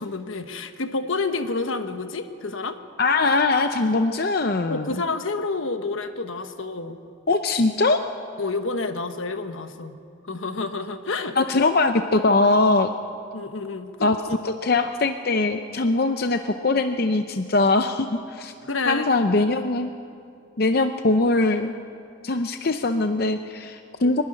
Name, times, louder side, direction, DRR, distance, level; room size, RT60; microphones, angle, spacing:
voice 1, 0.0-2.8 4.7-7.0 8.4-10.0 10.3-11.4 13.3-14.5 18.6-19.1 24.0-24.2, left 3 dB, 75° left, 8 dB, 1.2 m, -29 dB
voice 2, 3.0-4.9 7.3-8.0 11.4-12.9 14.0-14.2 14.4-18.5 18.9-19.9 20.6-21.7 22.2-24.2, left 3 dB, 50° left, 7 dB, 0.6 m, -21 dB
24.5 x 12.0 x 9.9 m, 2.5 s
head